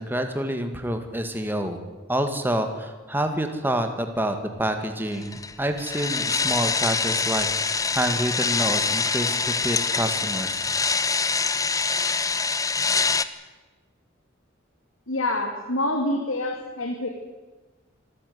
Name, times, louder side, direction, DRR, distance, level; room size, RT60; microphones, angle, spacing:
voice 1, 0.0-1.8 2.1-10.7, right 1 dB, 10° right, 6 dB, 2.0 m, -28 dB
sound 1, 5.2-13.3, left 4 dB, 15° left, 0.8 m, -25 dB
voice 2, 15.1-17.1, left 1 dB, 85° left, 2 dB, 2.8 m, -26 dB
25.5 x 13.5 x 9.6 m, 1.3 s
head